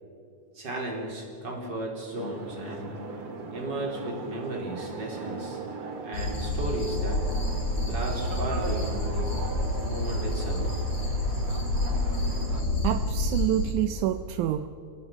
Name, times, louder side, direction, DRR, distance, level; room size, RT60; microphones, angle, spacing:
voice 1, 0.5-3.0 3.5-5.6 6.0-7.3 7.9-9.4 9.8-10.8, right 1 dB, 35° right, 0 dB, 4.4 m, -35 dB
sound 1, 2.1-12.6, right 3 dB, 50° right, 2.6 m, -39 dB
sound 2, 6.1-13.7, left 1 dB, 60° left, 5.5 m, -28 dB
voice 2, 12.8-14.7, right 12 dB, 80° right, 11 dB, 2.1 m, -27 dB
28.5 x 18.5 x 5.9 m, 2.6 s
omnidirectional pair, 3.5 m